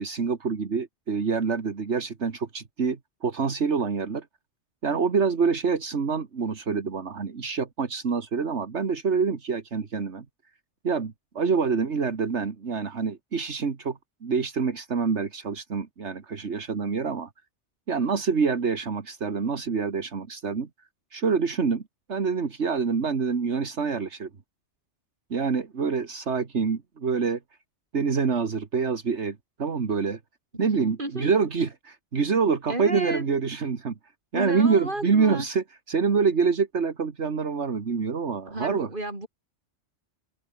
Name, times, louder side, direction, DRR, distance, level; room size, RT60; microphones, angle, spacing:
voice 1, 0.0-4.3 4.8-10.3 10.8-17.3 17.9-20.7 21.1-21.8 22.1-24.3 25.3-27.4 27.9-30.2 30.6-33.9 34.3-38.9, right 5 dB, 75° right, 2.0 m, -26 dB
voice 2, 31.0-31.3 32.7-33.2 34.3-35.5 38.5-39.3, right 1 dB, 45° right, 5.8 m, -32 dB
open air
omnidirectional pair, 1.2 m